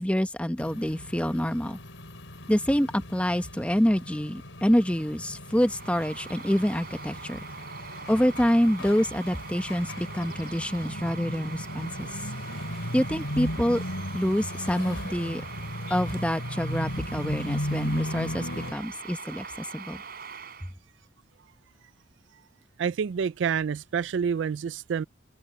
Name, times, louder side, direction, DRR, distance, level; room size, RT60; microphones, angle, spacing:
voice 1, 0.0-1.8 2.5-7.4 8.1-12.1 12.9-13.8 14.1-15.4 15.9-20.0, equal, 5° left, 1.2 m, -26 dB
sound 1, 0.6-18.7, left 1 dB, 80° left, 4.2 m, -36 dB
Bird vocalization bird call bird song, 5.4-20.7, right 6 dB, 50° right, 4.8 m, -43 dB
voice 2, 22.8-25.0, right 7 dB, 70° right, 0.4 m, -28 dB
open air
head